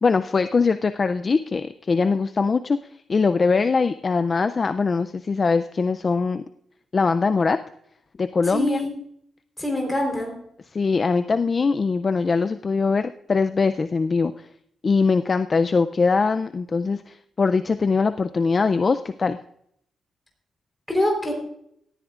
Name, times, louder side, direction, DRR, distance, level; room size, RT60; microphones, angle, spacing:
voice 1, 0.0-2.8 3.1-6.4 6.9-7.6 8.2-8.8 10.7-14.5 14.8-19.4, left 4 dB, 30° left, 10 dB, 0.3 m, -22 dB
voice 2, 8.5-8.9 9.6-10.4 20.9-21.3, left 1 dB, 5° left, 1 dB, 3.6 m, -24 dB
18.0 x 13.5 x 2.4 m, 0.74 s
wide cardioid pair, 170°, 0 cm